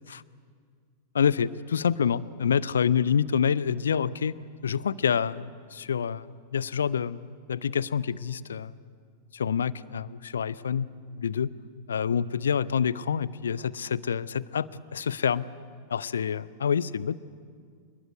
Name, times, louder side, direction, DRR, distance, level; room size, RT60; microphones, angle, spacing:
voice 1, 1.1-4.3 4.6-6.3 6.5-8.7 9.3-10.9 11.2-11.5 11.9-15.5 15.9-17.1, left 7 dB, 70° left, 20 dB, 0.6 m, -27 dB
27.0 x 20.5 x 8.1 m, 2.1 s
figure-of-eight pair, 90°, 0 cm